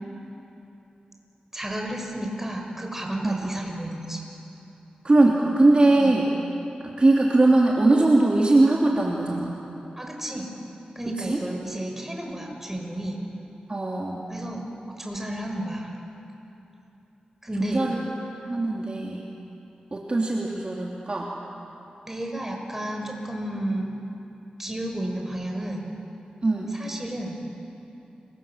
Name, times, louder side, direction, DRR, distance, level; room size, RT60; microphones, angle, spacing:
voice 1, 1.5-4.2 6.0-6.1 10.0-10.5 10.9-13.2 14.3-14.7 15.0-15.9 17.4-17.8 22.1-23.9 24.6-25.8 26.7-27.3, right 1 dB, 15° right, 1 dB, 6.3 m, -31 dB
voice 2, 5.0-6.3 6.8-9.6 11.1-11.4 13.7-14.3 17.6-18.0 18.4-19.3 19.9-21.3 26.4-26.7, right 2 dB, 40° right, -2 dB, 3.0 m, -21 dB
30.0 x 26.0 x 7.5 m, 3.0 s
cardioid pair, 60°, 3 cm